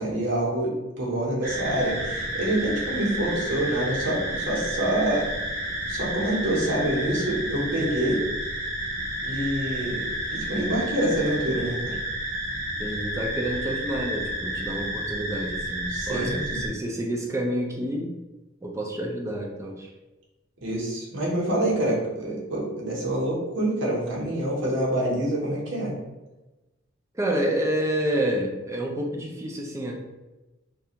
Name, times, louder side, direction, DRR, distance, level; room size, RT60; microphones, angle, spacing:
voice 1, 0.0-5.3 5.9-8.2 9.2-10.1 10.3-11.9 15.9-16.7 20.6-25.9, right 1 dB, 80° right, -4 dB, 0.8 m, -26 dB
sound 1, 1.4-16.7, right 1 dB, 50° right, 0.7 m, -31 dB
voice 2, 12.8-18.1 18.6-19.9 27.1-29.9, right 1 dB, 15° right, -1 dB, 0.4 m, -29 dB
2.4 x 2.2 x 2.8 m, 1.1 s
head